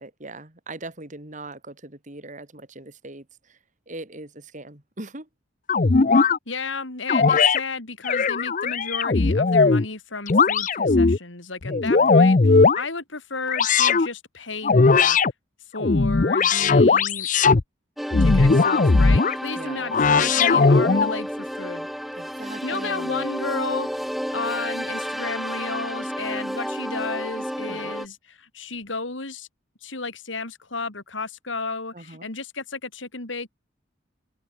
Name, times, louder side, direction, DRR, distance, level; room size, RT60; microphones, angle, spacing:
voice 1, 0.0-3.6 3.9-5.3 11.7-12.4 19.6-19.9 22.1-23.2 27.7-27.9 31.9-32.3, right 2 dB, 40° right, 2.9 m, -41 dB
sound 1, 5.7-6.4 7.1-7.6 8.0-9.9 10.3-11.2 11.7-12.8 13.5-14.1 14.6-15.3 15.8-17.6 18.1-19.4 19.9-21.1, left 4 dB, 40° left, 0.6 m, -18 dB
voice 2, 6.5-15.2 15.7-17.3 18.2-21.9 22.6-29.5 29.8-33.5, left 3 dB, 75° left, 3.6 m, -33 dB
sound 2, 18.0-28.1, equal, ahead, 0.6 m, -31 dB
head